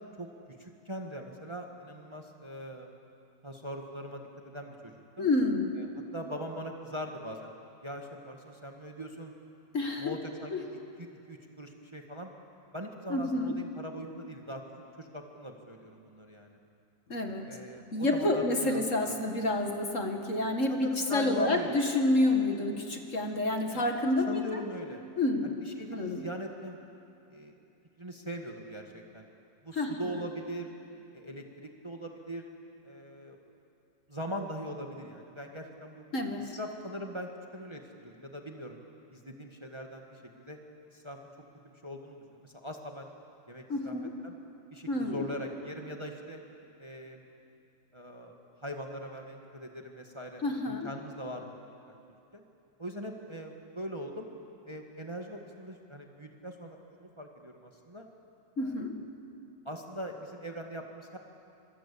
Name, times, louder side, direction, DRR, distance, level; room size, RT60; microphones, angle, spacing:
voice 1, 0.2-2.9 3.4-5.3 5.8-5.9 6.1-7.5 7.8-9.3 10.0-10.7 11.0-12.3 12.7-14.6 15.0-16.6 17.5-19.2 20.7-21.8 23.7-23.8 24.3-25.1 25.4-26.8 27.3-27.6 28.0-29.3 29.6-30.7 31.1-32.5 32.8-33.4 34.1-36.0 36.4-38.8 39.1-40.6 40.9-41.2 41.6-43.1 43.5-44.0 44.2-44.4 44.7-46.4 46.8-47.2 47.9-48.4 48.6-51.6 51.9-52.0 52.3-52.4 52.8-54.3 54.7-58.1 58.6-58.8 59.7-61.2, equal, 15° right, 2 dB, 1.7 m, -41 dB
voice 2, 5.2-5.7 9.7-10.2 10.5-10.6 13.1-13.5 17.1-17.5 17.9-24.4 25.2-25.5 25.9-26.2 29.7-29.9 36.1-36.4 43.7-44.1 44.9-45.3 50.4-50.9 58.6-59.0, left 2 dB, 45° left, 3 dB, 2.3 m, -28 dB
26.0 x 25.0 x 8.6 m, 2.6 s
omnidirectional pair, 1.9 m